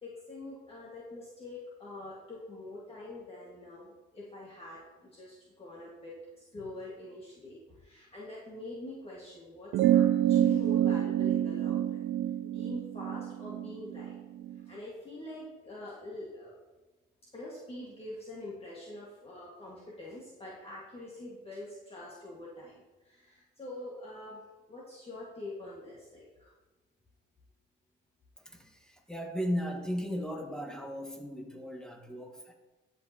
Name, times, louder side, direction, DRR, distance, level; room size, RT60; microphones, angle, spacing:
voice 1, 0.0-12.1 12.4-14.2 14.7-16.6 17.3-24.4 24.7-26.5, left 1 dB, 30° left, -6 dB, 1.7 m, -45 dB
sound 1, 9.7-14.6, right 11 dB, 70° right, 0.4 m, -27 dB
voice 2, 29.1-32.5, equal, 5° left, 2 dB, 1.4 m, -35 dB
13.0 x 5.4 x 2.9 m, 1.2 s
cardioid pair, 90°, 20 cm